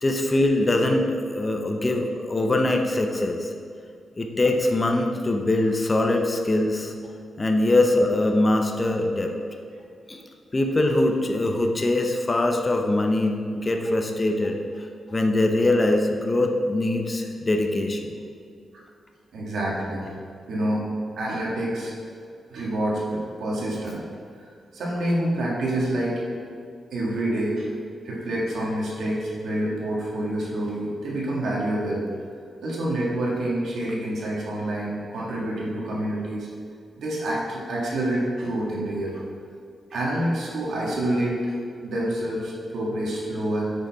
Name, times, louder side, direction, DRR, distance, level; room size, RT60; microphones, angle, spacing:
voice 1, 0.0-3.5 4.2-6.9 7.4-9.3 10.1-10.2 10.5-14.6 15.1-18.1, left 2 dB, 25° left, 3 dB, 0.8 m, -22 dB
voice 2, 19.3-20.1 20.5-20.9 21.2-21.9 22.5-24.0 24.7-26.2 26.9-27.7 28.0-32.1 32.6-36.5 37.0-39.2 39.9-41.6 41.8-43.7, right 1 dB, 80° right, -4 dB, 1.8 m, -27 dB
9.0 x 5.3 x 4.7 m, 2.3 s
cardioid pair, 115°, 0 cm